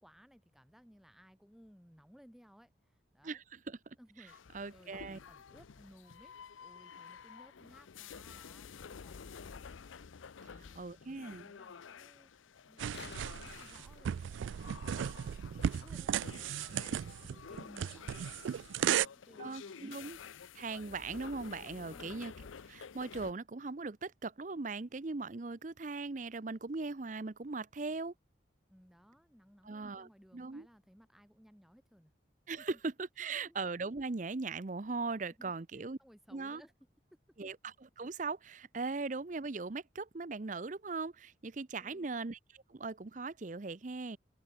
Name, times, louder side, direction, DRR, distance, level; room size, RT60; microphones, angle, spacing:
voice 1, 0.0-3.4 4.0-6.3 6.6-9.8 10.4-20.0 21.9-22.3 28.7-32.1 32.6-32.7 33.2-33.6 35.4-36.7 37.1-37.2 41.8-42.2, equal, ahead, 3.1 m, -61 dB
voice 2, 3.2-4.0 4.5-5.2 10.8-11.5 19.4-20.2 20.5-22.3 22.7-28.1 29.7-30.7 32.5-36.0 36.3-36.6 37.4-42.4 42.7-44.2, right 3 dB, 40° right, 0.6 m, -39 dB
sound 1, 4.3-23.3, left 6 dB, 90° left, 0.6 m, -51 dB
sound 2, 12.6-14.7 17.6-17.7, left 4 dB, 65° left, 1.3 m, -52 dB
sound 3, 12.8-19.1, right 9 dB, 80° right, 0.3 m, -35 dB
head